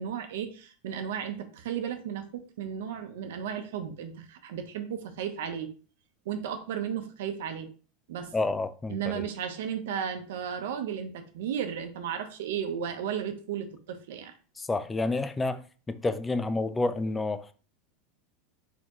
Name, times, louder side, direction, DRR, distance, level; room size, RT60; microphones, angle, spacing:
voice 1, 0.0-5.7 6.3-7.7 8.1-8.3 8.9-14.3, right 8 dB, 80° right, 0.8 m, -34 dB
voice 2, 8.3-9.3 14.6-17.5, left 2 dB, 10° left, 0.3 m, -29 dB
4.4 x 3.7 x 3.0 m
supercardioid pair, 150°, 0 cm